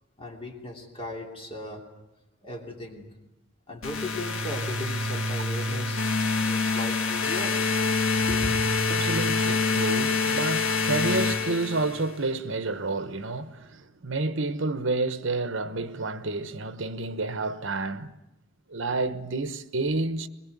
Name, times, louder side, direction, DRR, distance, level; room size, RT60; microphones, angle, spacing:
voice 1, 0.2-1.8 2.4-3.1 3.7-6.0 6.4-7.5 8.2-8.6, left 1 dB, 25° left, 2.9 m, -37 dB
sound 1, 3.8-12.1, left 4 dB, 90° left, 1.9 m, -26 dB
voice 2, 8.9-18.1 18.7-20.3, right 3 dB, 70° right, 1.2 m, -29 dB
22.5 x 20.5 x 9.4 m
head